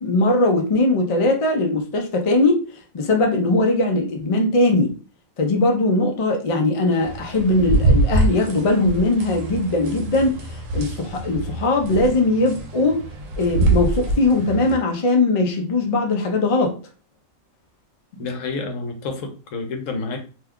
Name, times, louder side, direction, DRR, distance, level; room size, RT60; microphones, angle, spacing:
voice 1, 0.0-2.6 2.9-4.9 5.4-10.4 10.7-13.0 13.4-16.8, left 2 dB, 45° left, 0.4 m, -20 dB
sound 1, 7.0-14.8, right 2 dB, 80° right, 1.0 m, -24 dB
voice 2, 18.2-20.2, left 3 dB, 75° left, 1.1 m, -29 dB
2.7 x 2.3 x 3.5 m
omnidirectional pair, 1.4 m